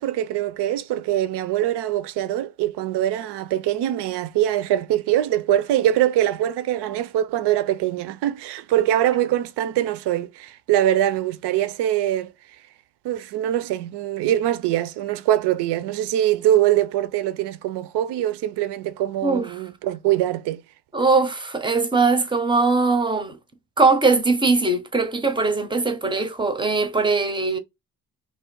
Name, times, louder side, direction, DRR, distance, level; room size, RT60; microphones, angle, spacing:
voice 1, 0.0-12.3 13.0-20.6, right 12 dB, 80° right, 0.5 m, -23 dB
voice 2, 20.9-23.4 23.8-27.6, right 3 dB, 10° right, 0.4 m, -20 dB
3.2 x 2.7 x 4.5 m
cardioid pair, 175°, 40 cm